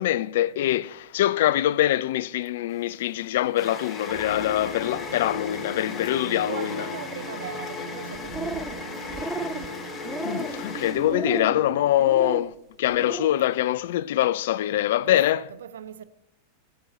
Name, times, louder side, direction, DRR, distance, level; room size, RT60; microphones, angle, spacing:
voice 1, 0.0-6.9 10.2-12.5 12.8-15.5, left 13 dB, 55° left, 0.3 m, -24 dB
sound 1, 2.7-11.5, left 4 dB, 20° left, 1.0 m, -38 dB
sound 2, 4.0-11.8, left 1 dB, 90° right, 2.9 m, -38 dB
voice 2, 6.1-9.3 11.8-12.4 14.7-16.0, right 9 dB, 60° right, 0.6 m, -40 dB
sound 3, 8.1-8.8 9.1-9.7 10.0-10.6 11.1-11.6 12.0-12.4 12.9-13.3, right 3 dB, 5° right, 0.5 m, -33 dB
17.0 x 8.1 x 4.2 m
figure-of-eight pair, 90°, 0 cm